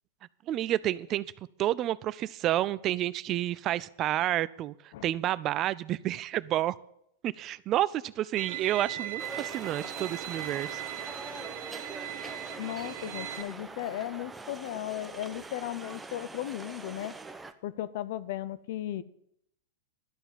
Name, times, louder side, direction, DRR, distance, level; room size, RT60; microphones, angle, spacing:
voice 1, 0.5-1.3 1.6-6.8 7.2-10.8, right 13 dB, 35° right, 19 dB, 0.4 m, -30 dB
Bowed string instrument, 8.4-13.4, right 12 dB, 65° right, 1.1 m, -39 dB
sound 1, 9.2-17.5, right 3 dB, 10° right, 0.8 m, -43 dB
voice 2, 12.6-17.1 17.6-19.0, left 13 dB, 60° left, 15 dB, 0.6 m, -36 dB
12.0 x 5.6 x 9.0 m, 0.75 s
hypercardioid pair, 100°, 0 cm